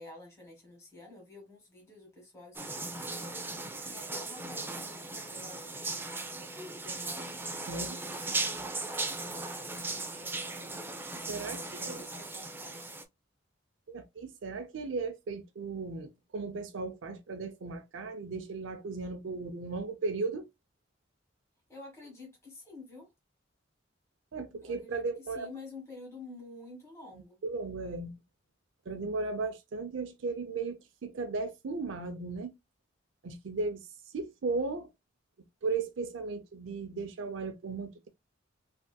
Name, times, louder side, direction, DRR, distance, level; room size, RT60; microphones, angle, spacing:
voice 1, 0.0-8.3 8.7-12.8 21.7-23.1 24.6-27.4, left 2 dB, 15° left, 1.4 m, -50 dB
sound 1, 2.6-13.0, right 3 dB, 10° right, 0.4 m, -38 dB
voice 2, 11.3-12.0 13.9-20.5 24.3-25.5 27.4-28.1 28.9-32.5 33.2-33.9 34.1-34.9 35.6-38.1, right 3 dB, 75° right, 0.5 m, -36 dB
3.3 x 2.8 x 2.2 m
head